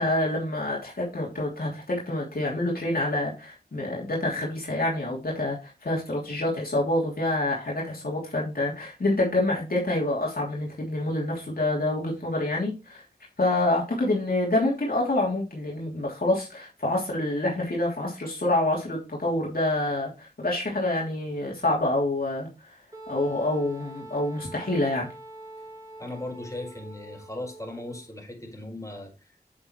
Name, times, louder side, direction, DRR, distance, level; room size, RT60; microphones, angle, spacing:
voice 1, 0.0-13.0 13.4-22.5 23.1-25.1, left 1 dB, 60° left, 3.0 m, -27 dB
Wind instrument woodwind instrument, 22.9-28.1, right 2 dB, 20° right, 3.1 m, -44 dB
voice 2, 26.0-29.4, left 1 dB, 20° left, 5.1 m, -38 dB
8.8 x 7.6 x 3.2 m
wide cardioid pair, 55°, 17 cm